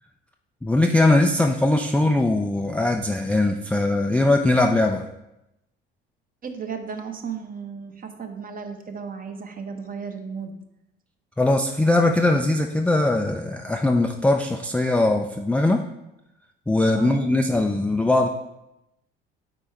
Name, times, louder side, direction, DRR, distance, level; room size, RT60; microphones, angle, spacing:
voice 1, 0.6-5.1 11.4-15.8 16.7-18.3, left 2 dB, 5° left, 3 dB, 0.3 m, -20 dB
voice 2, 6.4-10.5 17.0-17.2, right 6 dB, 30° right, 6 dB, 0.9 m, -34 dB
8.5 x 4.5 x 3.3 m, 0.89 s
figure-of-eight pair, 55°, 30 cm